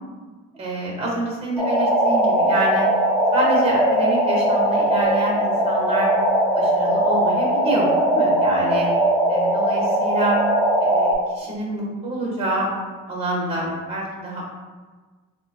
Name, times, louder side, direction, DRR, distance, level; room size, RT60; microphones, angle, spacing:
voice 1, 0.6-2.9 3.3-6.1 6.5-7.9 8.1-8.9 9.3-10.4 10.8-12.7 13.1-14.4, right 2 dB, 20° right, -4 dB, 1.3 m, -27 dB
sound 1, 1.6-11.1, right 1 dB, 5° left, 1.3 m, -19 dB
4.0 x 2.2 x 3.0 m, 1.4 s
cardioid pair, 90°, 30 cm